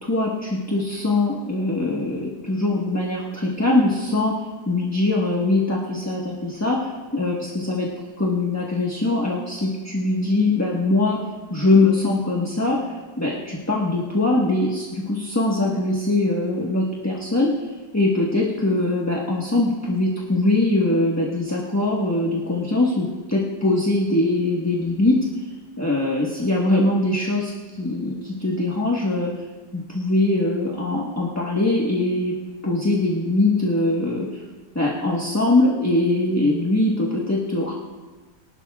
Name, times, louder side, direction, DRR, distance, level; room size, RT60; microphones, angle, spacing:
voice 1, 0.0-7.9 8.2-11.2 11.5-25.2 25.8-27.5 27.8-29.4 29.7-32.4 32.6-34.4 34.7-37.7, left 2 dB, 10° left, -4 dB, 1.1 m, -22 dB
23.5 x 11.5 x 2.4 m, 1.3 s
omnidirectional pair, 1.9 m